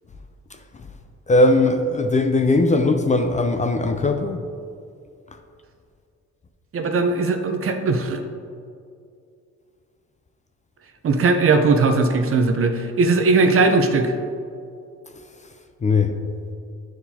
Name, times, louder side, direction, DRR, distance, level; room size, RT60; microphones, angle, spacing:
voice 1, 1.3-4.5 15.8-16.1, left 2 dB, 25° left, 6 dB, 0.4 m, -19 dB
voice 2, 6.7-8.2 11.0-14.1, right 3 dB, 45° right, 6 dB, 0.7 m, -19 dB
10.0 x 4.6 x 2.8 m, 2.4 s
cardioid pair, 90°, 30 cm